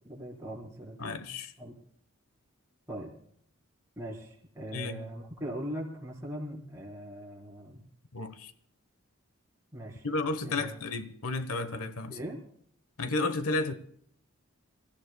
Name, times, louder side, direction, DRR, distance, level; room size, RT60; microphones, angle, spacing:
voice 1, 0.0-1.3 1.6-1.7 2.9-3.1 4.0-7.8 9.7-10.1 10.4-10.8 12.1-12.4, equal, 15° right, -3 dB, 4.5 m, -40 dB
voice 2, 1.0-1.5 4.7-5.0 8.1-8.5 10.0-12.2 13.0-13.7, left 3 dB, 80° left, 11 dB, 1.1 m, -32 dB
27.5 x 15.0 x 2.3 m, 0.67 s
head